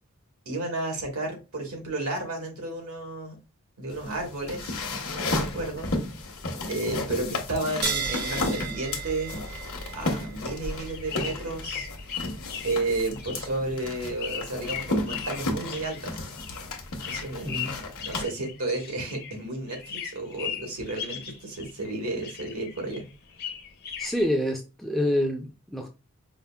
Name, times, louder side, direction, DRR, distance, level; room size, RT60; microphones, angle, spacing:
voice 1, 0.4-3.4 3.8-6.3 6.7-9.4 9.9-11.9 12.6-16.2 17.0-17.7 18.0-23.0, right 2 dB, 75° right, 1.4 m, -32 dB
sound 1, 3.9-18.2, left 2 dB, 70° left, 0.9 m, -33 dB
sound 2, 7.8-14.8, right 4 dB, 45° right, 0.7 m, -37 dB
sound 3, 10.4-19.4 19.7-21.9 22.2-24.3, left 8 dB, 45° left, 0.6 m, -38 dB
voice 2, 17.4-17.8 24.0-25.9, left 1 dB, ahead, 0.4 m, -27 dB
5.0 x 2.4 x 2.2 m
head